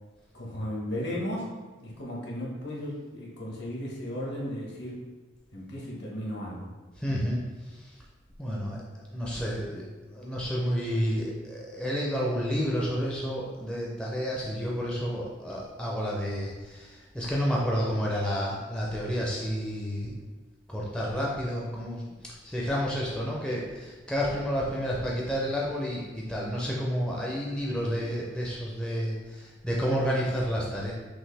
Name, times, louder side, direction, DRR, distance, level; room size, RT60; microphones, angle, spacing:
voice 1, 0.3-1.5 1.8-5.0 5.5-6.7, equal, 60° left, -4 dB, 1.2 m, -35 dB
voice 2, 7.0-7.4 8.4-8.8 9.1-9.8 10.1-20.2 20.7-30.9, equal, 5° left, -4 dB, 0.5 m, -30 dB
5.9 x 2.6 x 3.3 m, 1.3 s
head